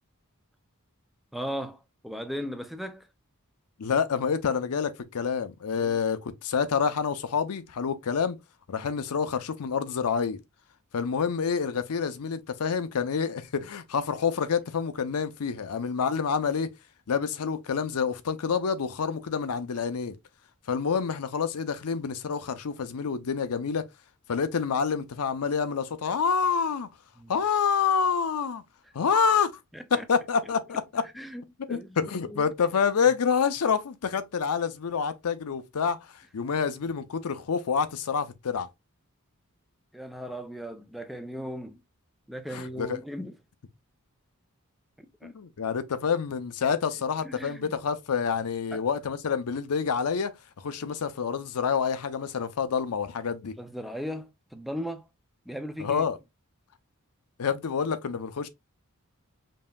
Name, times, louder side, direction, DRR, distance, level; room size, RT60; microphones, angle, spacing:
voice 1, 1.3-3.1 5.7-6.0 27.2-27.3 29.7-30.0 31.2-32.5 39.9-41.8 42.3-43.4 45.0-45.4 47.2-47.7 48.7-48.8 53.6-55.1 55.5-56.0, equal, ahead, 0.4 m, -37 dB
voice 2, 3.8-8.4 8.7-10.4 10.9-16.7 17.1-20.2 20.7-23.9 24.3-26.9 27.3-28.6 28.9-29.5 29.9-31.1 31.7-38.7 42.5-43.0 45.2-50.3 50.6-53.5 55.8-56.2 57.4-58.5, left 6 dB, 85° left, 0.5 m, -27 dB
5.2 x 2.7 x 2.3 m
head